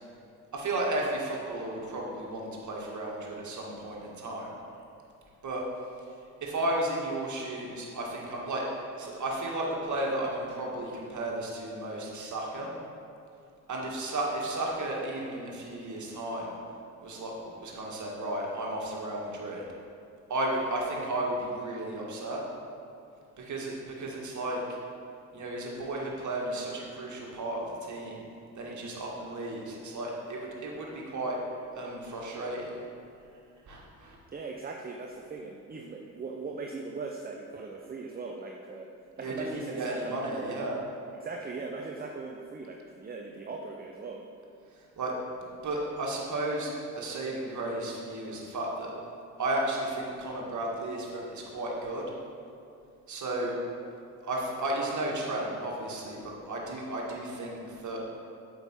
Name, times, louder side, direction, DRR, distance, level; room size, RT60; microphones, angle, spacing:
voice 1, 0.5-4.5 5.4-5.6 6.4-8.6 9.0-12.7 13.7-16.5 17.0-19.6 20.3-22.4 23.4-24.6 25.3-28.2 28.5-31.4 31.8-32.7 33.7-34.2 39.2-40.8 44.7-48.9 49.4-52.0 53.1-53.5 54.2-58.0, right 1 dB, 40° right, -2 dB, 2.0 m, -33 dB
voice 2, 34.3-38.9 39.2-40.5 41.2-44.2, right 4 dB, 20° right, 1 dB, 0.7 m, -39 dB
7.9 x 5.5 x 4.6 m, 2.5 s
hypercardioid pair, 50°, 46 cm